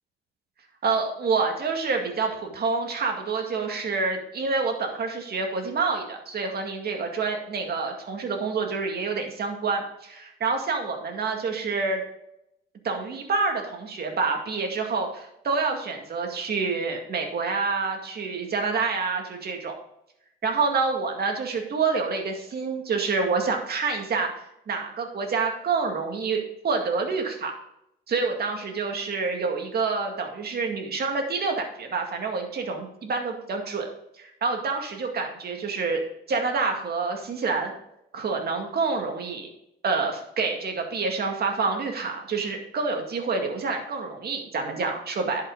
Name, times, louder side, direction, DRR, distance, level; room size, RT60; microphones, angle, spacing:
voice 1, 0.8-12.0 12.8-19.8 20.4-24.3 24.7-27.5 28.1-33.9 34.2-36.0 36.3-37.7 38.1-39.5 39.8-45.4, right 4 dB, 55° right, 3 dB, 2.1 m, -27 dB
10.5 x 5.8 x 3.9 m, 0.79 s
cardioid pair, 90°, 20 cm